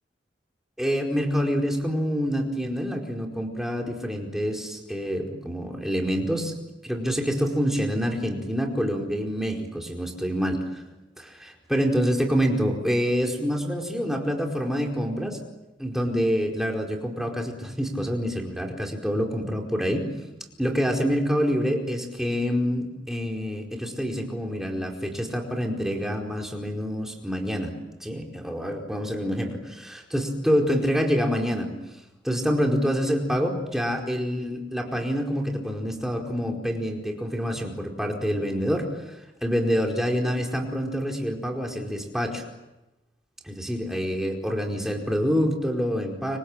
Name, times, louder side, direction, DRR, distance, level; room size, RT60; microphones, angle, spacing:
voice 1, 0.8-6.5 6.8-10.8 11.2-15.4 15.8-20.1 20.6-27.7 28.0-31.7 32.2-42.4 43.4-46.4, equal, 5° right, 1 dB, 4.7 m, -27 dB
29.5 x 25.5 x 7.5 m, 1.0 s
head